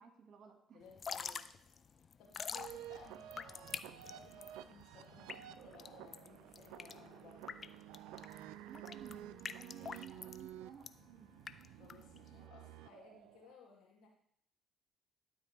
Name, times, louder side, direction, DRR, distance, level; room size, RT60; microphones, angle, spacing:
voice 1, 0.0-0.9 8.7-11.4, right 6 dB, 55° right, 4 dB, 1.7 m, -56 dB
voice 2, 0.7-1.5 2.0-7.7 9.7-10.2 11.7-14.1, left 5 dB, 70° left, -2 dB, 2.5 m, -60 dB
Drip / Trickle dribble, 0.9-12.5, left 6 dB, 45° left, 0.4 m, -47 dB
sound 1, 2.5-13.5, right 12 dB, 80° right, 0.3 m, -52 dB
12.0 x 4.4 x 3.3 m, 0.67 s
hypercardioid pair, 55°, 0 cm